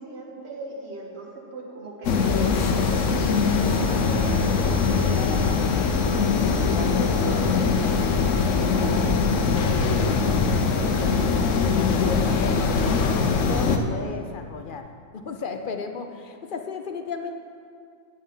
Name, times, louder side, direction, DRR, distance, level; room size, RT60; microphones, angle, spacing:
voice 1, 0.0-3.0 3.4-5.4 6.0-11.4, right 2 dB, 55° right, -2 dB, 2.0 m, -39 dB
sound 1, 2.0-13.8, left 5 dB, 70° left, 1.1 m, -22 dB
voice 2, 12.0-17.3, left 5 dB, 50° left, 6 dB, 0.8 m, -34 dB
9.4 x 9.3 x 5.6 m, 2.3 s
omnidirectional pair, 1.4 m